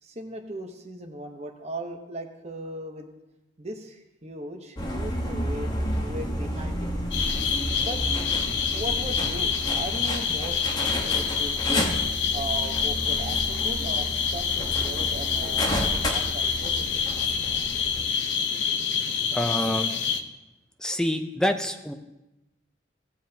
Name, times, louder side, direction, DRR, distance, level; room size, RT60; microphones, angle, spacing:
voice 1, 0.0-3.1 3.6-6.9 7.8-8.0 8.7-11.9 12.3-16.9, right 1 dB, 35° right, 4 dB, 1.0 m, -38 dB
sound 1, 4.8-18.0, equal, 20° left, 1.1 m, -31 dB
sound 2, 7.1-20.2, left 6 dB, 80° left, 0.7 m, -27 dB
voice 2, 19.3-19.9 20.8-21.9, left 1 dB, 5° left, 6 dB, 0.5 m, -26 dB
16.5 x 7.4 x 2.8 m, 0.99 s
head